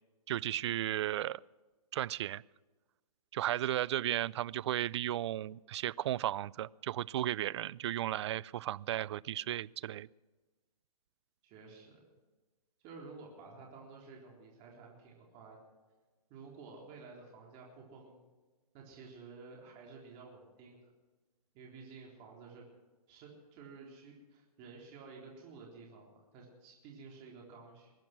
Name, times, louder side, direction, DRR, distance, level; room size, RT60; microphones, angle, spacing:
voice 1, 0.3-1.4 1.9-2.4 3.3-10.1, right 12 dB, 45° right, 22 dB, 0.4 m, -34 dB
voice 2, 11.4-12.0 12.8-15.6 16.3-18.2 18.7-20.9 21.5-22.6 23.1-27.9, right 4 dB, 30° right, -1 dB, 3.8 m, -52 dB
21.5 x 10.5 x 6.0 m, 1.2 s
hypercardioid pair, 140°, 20 cm